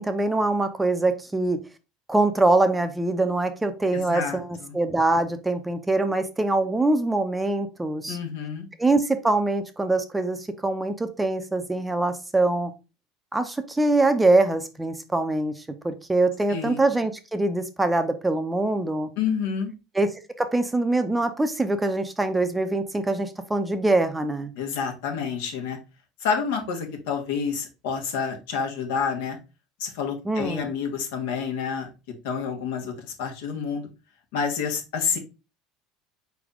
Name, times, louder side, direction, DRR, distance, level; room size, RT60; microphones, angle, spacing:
voice 1, 0.0-1.6 2.1-8.2 8.8-12.7 13.3-19.1 19.9-24.5 30.2-30.7, right 2 dB, 10° right, 8 dB, 0.6 m, -24 dB
voice 2, 3.9-4.8 8.1-8.7 16.5-16.8 19.2-19.7 24.6-25.8 26.2-29.4 29.8-31.9 32.2-33.9 34.3-35.2, left 6 dB, 85° left, 3 dB, 1.3 m, -29 dB
4.2 x 3.5 x 3.6 m, 0.29 s
supercardioid pair, 115°, 0 cm